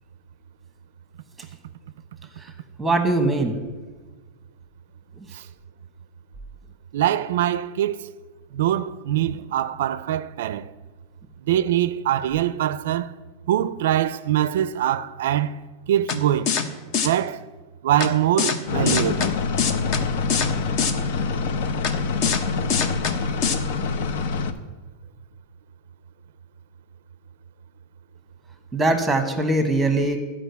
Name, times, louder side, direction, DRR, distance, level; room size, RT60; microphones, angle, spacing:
voice 1, 2.8-3.6 5.2-5.3 28.7-30.2, right 2 dB, 5° right, 1.2 m, -21 dB
voice 2, 6.9-8.1 8.5-10.7 11.5-13.1 13.5-15.6 15.9-16.5 17.0-17.5 17.8-19.3, right 11 dB, 80° right, 0.4 m, -23 dB
sound 1, 16.1-16.2 16.5-16.6 16.9-17.1 18.0-18.1 18.4-18.6 18.9-19.3 19.6-20.0 20.3-20.5 20.8-20.9 21.8-21.9 22.2-22.4 22.7-23.1 23.4-23.6, left 6 dB, 40° left, 0.9 m, -23 dB
sound 2, 18.7-24.5, left 4 dB, 70° left, 0.8 m, -26 dB
12.0 x 5.1 x 8.1 m
supercardioid pair, 160°, 0 cm